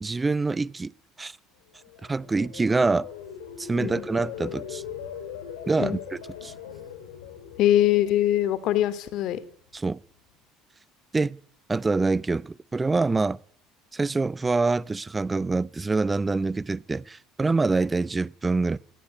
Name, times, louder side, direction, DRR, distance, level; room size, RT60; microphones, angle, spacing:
voice 1, 0.0-0.9 1.2-1.4 2.0-3.1 3.6-4.8 5.7-6.5 9.7-10.0 11.1-11.4 11.7-13.4 13.9-18.8, right 3 dB, 20° right, 1.0 m, -25 dB
sound 1, 1.7-8.9 9.3-9.7, left 8 dB, 80° left, 5.4 m, -40 dB
voice 2, 7.6-9.4, left 12 dB, 60° left, 2.8 m, -22 dB
26.0 x 17.5 x 9.4 m
hypercardioid pair, 70°, 0 cm